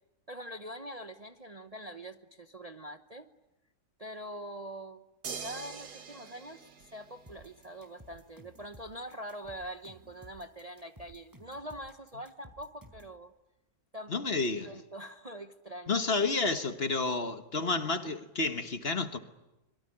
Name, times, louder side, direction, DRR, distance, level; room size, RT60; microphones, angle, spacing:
voice 1, 0.3-3.3 4.0-5.0 5.4-6.6 6.9-13.3 13.9-14.2 14.6-16.0, equal, 30° right, 0.9 m, -44 dB
sound 1, 5.2-7.7 9.4-9.5, right 6 dB, 85° right, 2.2 m, -44 dB
sound 2, 7.3-13.2, right 1 dB, 10° right, 4.3 m, -55 dB
voice 2, 14.1-14.7 15.9-19.2, left 3 dB, 40° left, 1.5 m, -30 dB
25.0 x 23.0 x 9.9 m
omnidirectional pair, 1.7 m